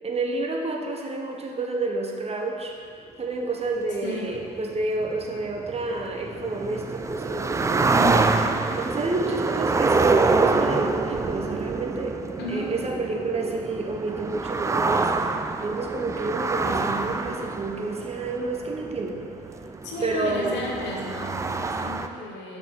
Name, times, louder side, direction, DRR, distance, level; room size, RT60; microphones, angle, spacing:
voice 1, 0.0-2.7 3.2-8.3 8.7-12.2 12.5-15.1 15.6-19.2 20.0-20.6, right 3 dB, 30° right, 1 dB, 0.9 m, -29 dB
voice 2, 4.0-4.3 7.8-8.2 12.4-12.7 19.8-22.6, left 2 dB, 60° left, -2 dB, 1.3 m, -34 dB
sound 1, 4.3-22.1, right 3 dB, 15° right, 0.3 m, -26 dB
6.2 x 5.7 x 3.7 m, 2.2 s
hypercardioid pair, 55°, 20 cm